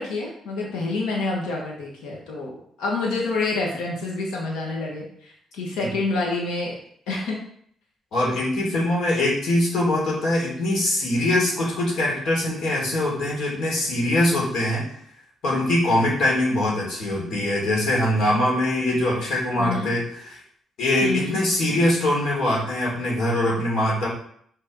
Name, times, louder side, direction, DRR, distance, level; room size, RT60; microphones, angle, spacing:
voice 1, 0.0-5.1 5.5-6.8 7.1-7.4 19.6-19.9 21.0-21.4, left 3 dB, 90° left, -2 dB, 2.0 m, -27 dB
voice 2, 8.1-14.8 15.4-20.4 20.8-24.1, left 1 dB, 70° left, -3 dB, 3.8 m, -22 dB
6.3 x 5.3 x 5.7 m, 0.64 s
cardioid pair, 90°, 0 cm